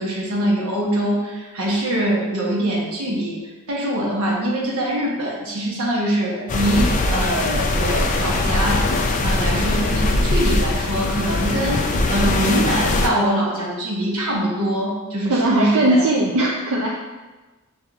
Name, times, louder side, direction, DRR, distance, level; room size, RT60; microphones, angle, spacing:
voice 1, 0.0-3.4 3.7-8.9 9.2-11.8 12.1-16.0, right 1 dB, 85° right, -3 dB, 1.0 m, -23 dB
sound 1, 6.5-13.1, left 2 dB, 35° left, 0.4 m, -21 dB
voice 2, 15.3-16.9, right 1 dB, 65° right, -3 dB, 0.4 m, -19 dB
6.6 x 2.6 x 2.4 m, 1.2 s
head